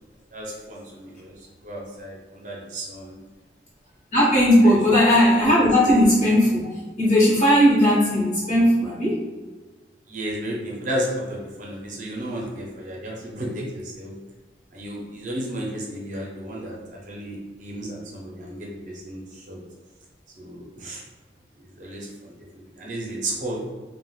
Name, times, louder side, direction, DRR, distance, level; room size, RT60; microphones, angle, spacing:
voice 1, 0.3-3.2 4.6-4.7 10.1-14.1 14.7-19.6 20.4-21.0 21.5-23.7, right 1 dB, 45° right, -3 dB, 0.5 m, -33 dB
voice 2, 4.1-6.7 7.0-9.2, equal, 40° left, -7 dB, 1.1 m, -17 dB
3.4 x 2.1 x 2.3 m, 1.3 s
head